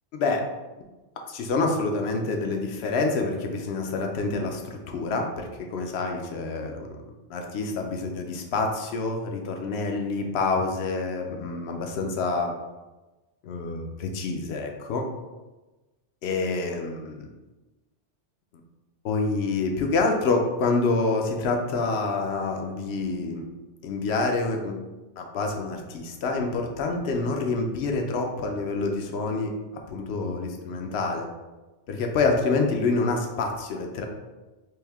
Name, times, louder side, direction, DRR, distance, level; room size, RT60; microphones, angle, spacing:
voice 1, 0.1-0.4 1.3-12.5 13.4-15.1 16.2-17.3 19.0-23.5 23.8-24.8 25.2-31.3 31.9-34.1, left 3 dB, 70° left, 3 dB, 0.8 m, -27 dB
3.4 x 2.6 x 3.4 m, 1.1 s
omnidirectional pair, 1.1 m